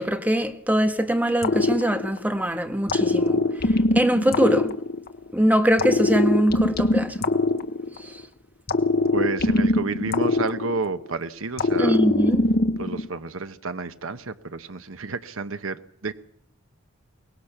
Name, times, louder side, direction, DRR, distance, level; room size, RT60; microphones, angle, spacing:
voice 1, 0.0-3.4 4.0-4.7 5.3-7.1 8.0-8.1 11.8-12.4, right 1 dB, 10° right, 1.6 m, -22 dB
sound 1, 1.4-2.4 2.9-5.3 5.8-8.2 8.7-11.1 11.6-13.1, left 2 dB, 50° left, 1.3 m, -22 dB
voice 2, 9.1-12.0 12.8-16.1, right 3 dB, 75° right, 1.1 m, -30 dB
23.0 x 20.0 x 5.9 m
head